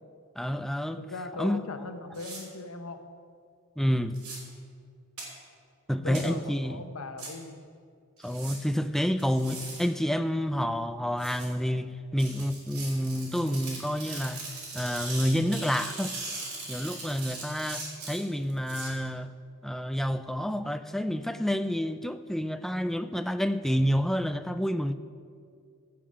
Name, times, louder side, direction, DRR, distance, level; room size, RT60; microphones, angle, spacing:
voice 1, 0.4-1.0 1.4-1.6 3.8-4.2 5.9-6.8 8.2-14.4 14.7-16.2 16.7-19.3 19.6-24.9, equal, ahead, 0.3 m, -29 dB
voice 2, 1.0-3.0 6.0-7.6, left 2 dB, 75° left, 0.9 m, -39 dB
sound 1, 2.1-2.4 4.1-4.4 5.2-5.3 6.1-6.2 7.2-7.3 8.2-8.6 9.2-9.8 11.2-11.5 12.2-18.9, right 3 dB, 80° right, 3.5 m, -40 dB
15.5 x 6.0 x 6.2 m
head